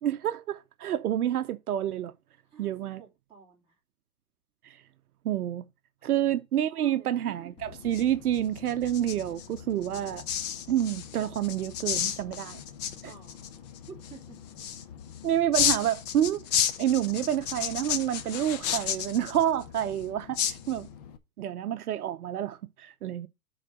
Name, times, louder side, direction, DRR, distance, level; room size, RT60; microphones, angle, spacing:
voice 1, 0.0-2.1 2.6-3.0 4.6-4.8 5.2-5.6 6.0-10.2 10.7-12.6 15.2-20.9 21.4-23.3, right 11 dB, 75° right, 0.8 m, -28 dB
voice 2, 2.4-3.8 6.0-6.2 6.6-7.4 13.0-13.5 13.9-14.5 16.6-16.7, right 6 dB, 10° right, 3.0 m, -51 dB
sound 1, 7.6-21.2, left 9 dB, 25° left, 0.6 m, -33 dB
7.5 x 3.9 x 6.3 m
hypercardioid pair, 145°, 46 cm